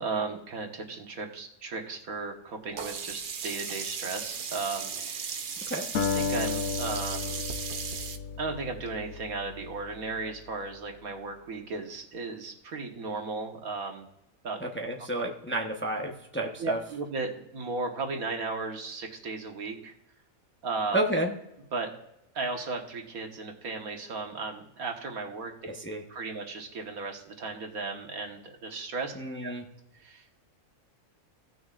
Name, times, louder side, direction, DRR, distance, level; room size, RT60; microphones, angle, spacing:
voice 1, 0.0-5.3 6.1-7.4 8.4-14.1 14.4-14.6 16.6-19.9 20.6-21.0 21.7-21.9 22.4-25.5 26.1-29.1 29.4-29.5 30.0-30.3, right 3 dB, 80° right, 3 dB, 1.7 m, -35 dB
Sink (filling or washing), 2.8-8.2, right 6 dB, 55° right, 0.6 m, -36 dB
Acoustic guitar, 5.9-10.4, left 5 dB, 75° left, 1.2 m, -33 dB
voice 2, 14.6-16.8 20.9-21.3 25.8-26.0 29.2-29.6, right 1 dB, 10° left, 1 dB, 0.7 m, -30 dB
16.5 x 6.3 x 2.4 m, 0.84 s
omnidirectional pair, 1.5 m